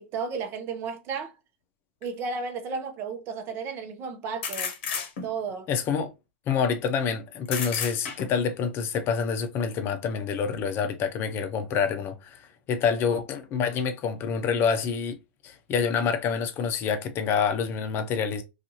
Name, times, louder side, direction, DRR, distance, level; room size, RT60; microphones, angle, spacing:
voice 1, 0.0-1.3 2.0-4.7 5.2-5.7, right 5 dB, 40° right, 0.7 m, -33 dB
sound 1, 2.0-2.1 4.4-5.5 7.4-8.5, left 6 dB, 60° left, 0.8 m, -32 dB
voice 2, 5.7-6.1 6.5-15.2 15.4-18.4, left 6 dB, 35° left, 0.6 m, -27 dB
2.6 x 2.4 x 2.8 m
hypercardioid pair, 110°, 7 cm